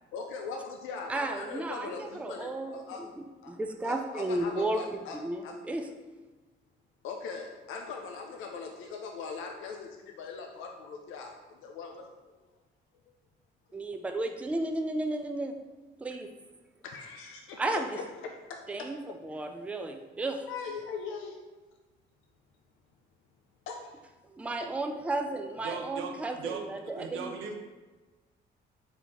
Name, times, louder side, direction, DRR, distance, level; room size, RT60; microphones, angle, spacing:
voice 1, 0.1-3.0 3.4-3.5 3.8-5.2 5.4-5.5 7.0-12.1 16.8-18.4 18.8-18.9 20.5-21.4 23.7-24.0, left 5 dB, 85° left, 2 dB, 0.4 m, -40 dB
voice 2, 1.1-3.1 3.5-5.9 13.7-15.5 16.0-16.3 17.6-18.0 18.7-20.5 24.3-27.3, right 2 dB, 5° right, 5 dB, 0.3 m, -33 dB
voice 3, 25.6-26.6 27.0-27.5, right 5 dB, 85° right, 4 dB, 0.6 m, -38 dB
4.1 x 3.6 x 2.9 m, 1.2 s
cardioid pair, 90°, 20 cm